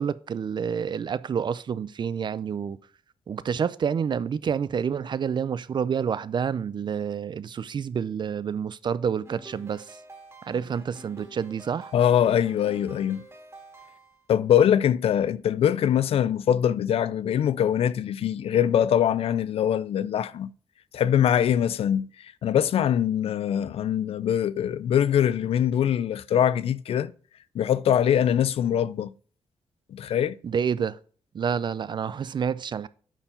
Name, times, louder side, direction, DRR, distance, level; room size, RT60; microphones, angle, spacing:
voice 1, 0.0-2.8 3.3-10.0 10.4-11.9 30.4-31.0 31.3-32.9, right 7 dB, 45° right, 0.4 m, -28 dB
sound 1, 9.2-14.3, right 2 dB, 25° right, 2.2 m, -48 dB
voice 2, 11.9-13.2 14.3-20.5 20.9-27.1 27.5-29.1 29.9-30.4, left 9 dB, 70° left, 0.4 m, -23 dB
8.9 x 4.4 x 4.4 m
cardioid pair, 90°, 10 cm